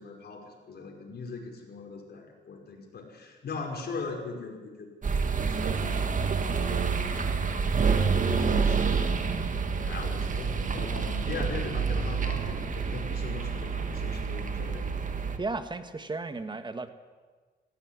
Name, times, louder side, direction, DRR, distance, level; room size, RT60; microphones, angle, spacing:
voice 1, 0.0-14.9, left 4 dB, 55° left, 1 dB, 5.6 m, -41 dB
sound 1, 5.0-15.4, right 5 dB, 40° right, 2.0 m, -28 dB
voice 2, 15.4-16.9, right 3 dB, 25° right, 9 dB, 1.6 m, -34 dB
17.0 x 16.0 x 9.8 m, 1.4 s
cardioid pair, 90°, 20 cm